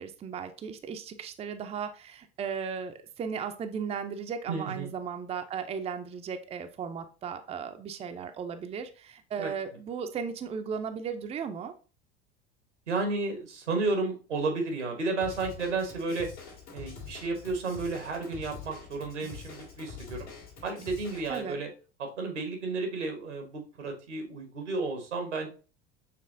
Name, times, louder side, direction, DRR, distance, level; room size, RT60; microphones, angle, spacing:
voice 1, 0.0-11.7 21.3-21.6, right 6 dB, 20° right, 7 dB, 0.4 m, -36 dB
voice 2, 4.5-4.9 9.4-9.5 12.9-16.3 16.7-20.3 20.6-21.7 22.0-25.5, right 3 dB, 85° right, 5 dB, 1.2 m, -32 dB
Drum kit / Drum, 15.2-21.4, left 5 dB, 80° left, 1.8 m, -45 dB
6.6 x 3.1 x 2.5 m, 0.36 s
figure-of-eight pair, 75°, 34 cm